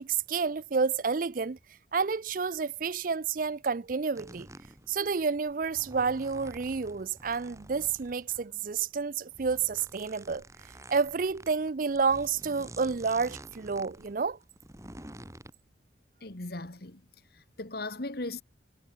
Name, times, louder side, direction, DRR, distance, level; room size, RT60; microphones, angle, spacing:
voice 1, 0.0-1.6 1.9-4.5 4.9-10.4 10.9-14.4, right 5 dB, 45° right, 0.5 m, -30 dB
sound 1, 4.2-15.5, right 1 dB, 15° right, 3.1 m, -49 dB
voice 2, 16.2-17.0 17.3-18.4, left 2 dB, 55° left, 1.7 m, -38 dB
head